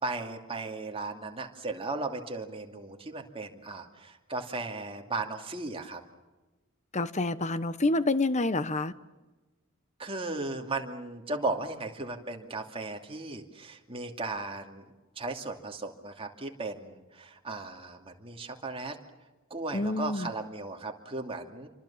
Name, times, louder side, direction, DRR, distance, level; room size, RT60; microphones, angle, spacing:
voice 1, 0.0-6.0 10.0-14.8 15.2-19.0 19.5-21.7, right 3 dB, 25° right, 2.6 m, -36 dB
voice 2, 6.9-8.9 19.7-20.3, left 2 dB, 35° left, 1.1 m, -28 dB
28.0 x 24.5 x 7.3 m
head